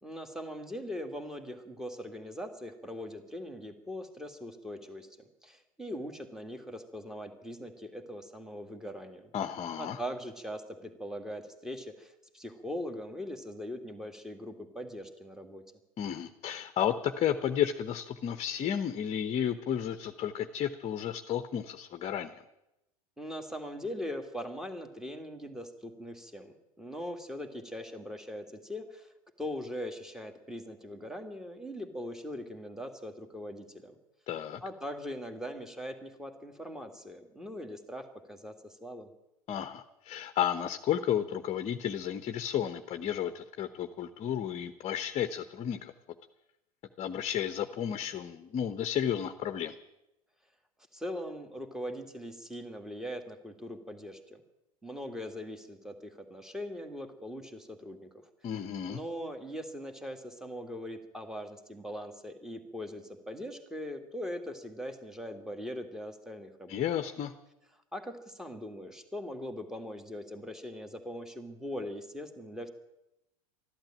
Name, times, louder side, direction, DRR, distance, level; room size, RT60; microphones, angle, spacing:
voice 1, 0.0-9.3 9.8-15.6 23.2-29.1 29.4-34.0 34.6-39.1 50.9-54.4 54.8-58.1 58.9-66.8 67.9-72.7, equal, ahead, 7 dB, 1.9 m, -41 dB
voice 2, 9.3-10.0 16.0-22.3 34.3-34.6 39.5-45.9 47.0-49.7 58.4-59.0 66.7-67.3, left 9 dB, 35° left, 9 dB, 0.9 m, -32 dB
13.5 x 12.0 x 8.9 m, 0.90 s
hypercardioid pair, 85°, 20 cm